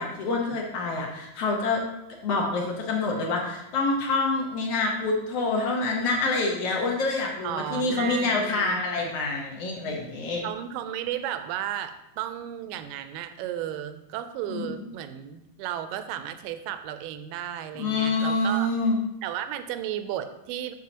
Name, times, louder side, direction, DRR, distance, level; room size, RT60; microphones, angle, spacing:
voice 1, 0.0-1.8 2.2-10.4 14.5-14.8 17.8-19.0, left 3 dB, 65° left, 0 dB, 1.7 m, -26 dB
voice 2, 7.4-9.2 10.4-18.7 19.2-20.7, right 11 dB, 85° right, 10 dB, 2.2 m, -34 dB
8.3 x 6.5 x 2.9 m, 0.88 s
omnidirectional pair, 3.8 m